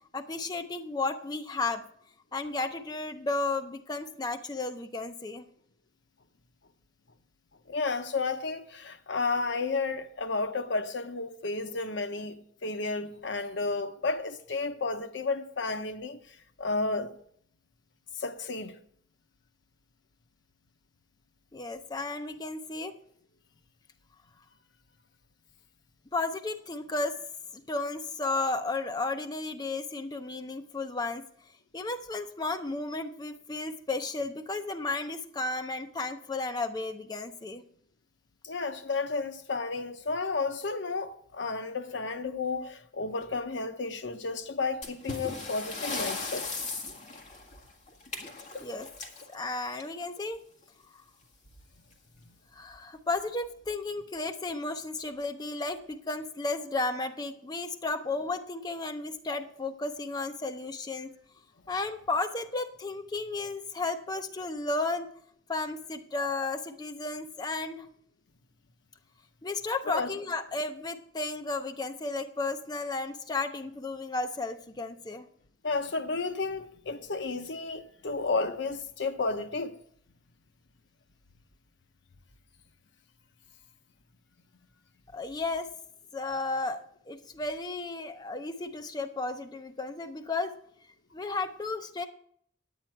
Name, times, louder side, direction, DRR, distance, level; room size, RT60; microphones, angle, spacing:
voice 1, 0.1-1.8 2.3-5.5 21.5-22.9 26.1-27.2 27.5-31.2 31.7-37.6 48.6-48.9 49.3-50.4 50.9-51.0 52.5-61.1 61.7-65.1 65.5-67.9 69.4-75.2 85.1-85.7 86.1-90.5 91.1-92.1, left 3 dB, 20° left, 0.5 m, -33 dB
voice 2, 7.7-17.1 18.2-18.8 38.4-46.5 69.9-70.1 75.6-79.8, left 3 dB, 65° left, 0.8 m, -32 dB
sound 1, 44.8-50.2 51.4-51.6 51.9-52.0 52.7-52.8 53.4-53.7, left 3 dB, 40° left, 1.8 m, -38 dB
10.0 x 9.2 x 4.4 m
head